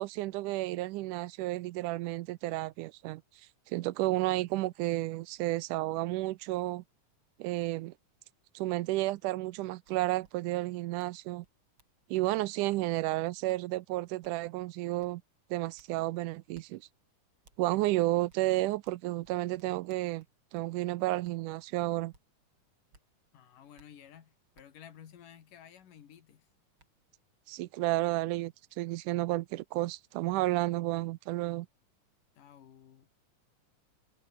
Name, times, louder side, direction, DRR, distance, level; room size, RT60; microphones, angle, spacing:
voice 1, 0.0-3.2 3.7-6.8 7.4-7.9 8.6-11.5 12.1-15.2 15.5-16.8 17.6-20.3 20.5-22.1 27.5-31.7, right 18 dB, 80° right, 2.1 m, -32 dB
sound 1, 9.8-9.9 10.2-10.3 11.0-11.2 11.4-12.3 12.7-12.9 13.5-13.6 14.2-14.4 15.0-15.1 15.8-15.9 16.5-16.7 17.4-17.6 18.3-18.4 18.8-20.7 21.2-21.4 22.1-22.2 22.9-23.1 23.8-23.9 24.5-24.7 26.2-26.3 26.8-26.9, right 3 dB, 40° right, 5.7 m, -63 dB
voice 2, 23.3-26.5 32.4-33.1, left 9 dB, 85° left, 3.8 m, -54 dB
omnidirectional pair, 3.7 m